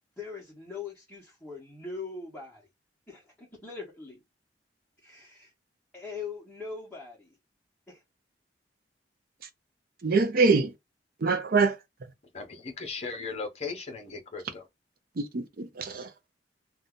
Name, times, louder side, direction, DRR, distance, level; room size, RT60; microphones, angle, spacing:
voice 1, 0.2-2.6 3.1-4.2 5.0-5.5 5.9-7.4 7.9-8.0, left 4 dB, 5° left, 1.0 m, -41 dB
voice 2, 10.0-10.7 11.2-11.8 15.2-16.1, right 4 dB, 55° right, 0.5 m, -24 dB
voice 3, 12.3-14.7, left 4 dB, 35° left, 0.8 m, -37 dB
2.7 x 2.3 x 3.6 m
head